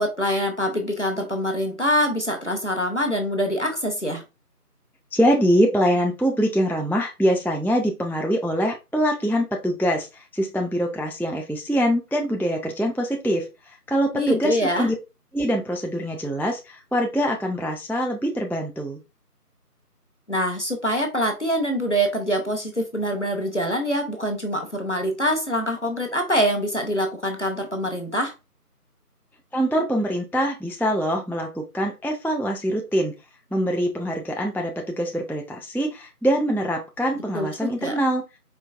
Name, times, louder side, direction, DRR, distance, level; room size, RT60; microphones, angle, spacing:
voice 1, 0.0-4.2 14.1-14.9 20.3-28.3 37.3-37.9, equal, 50° left, 0.8 m, -24 dB
voice 2, 5.1-15.0 15.3-19.0 29.5-33.1 33.5-38.2, equal, 5° left, 0.4 m, -24 dB
4.5 x 2.6 x 2.4 m
figure-of-eight pair, 180°, 47 cm